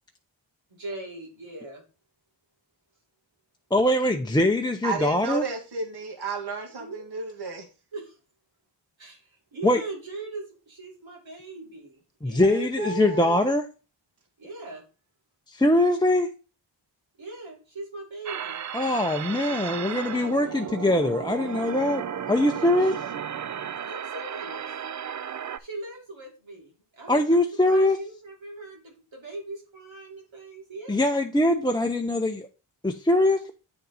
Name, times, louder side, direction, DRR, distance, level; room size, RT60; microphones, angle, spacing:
voice 1, 0.8-1.8 6.7-7.1 7.9-8.1 9.0-12.6 14.4-14.8 17.2-18.6 22.5-22.9 23.9-24.7 25.6-27.4 27.7-31.2, right 2 dB, 80° right, 3.0 m, -40 dB
voice 2, 3.7-5.4 9.6-9.8 12.2-13.7 15.5-16.3 18.7-22.0 22.3-23.0 27.1-28.0 30.9-32.5 32.8-33.5, left 1 dB, 10° left, 0.6 m, -22 dB
voice 3, 4.8-7.7 12.4-13.5, right 4 dB, 55° right, 1.6 m, -32 dB
sound 1, 18.3-25.6, right 8 dB, 40° right, 0.4 m, -34 dB
8.7 x 4.1 x 4.1 m
cardioid pair, 55°, 47 cm